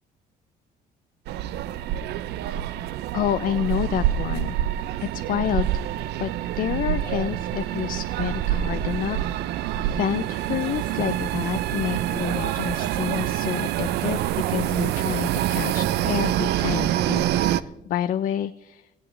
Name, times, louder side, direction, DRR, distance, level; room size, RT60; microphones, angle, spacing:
sound 1, 1.3-17.6, right 12 dB, 80° right, 0.5 m, -26 dB
voice 1, 3.1-4.6 5.1-9.3 9.8-18.9, left 11 dB, 55° left, 12 dB, 0.4 m, -29 dB
18.0 x 14.5 x 3.2 m, 0.92 s
cardioid pair, 110°, 17 cm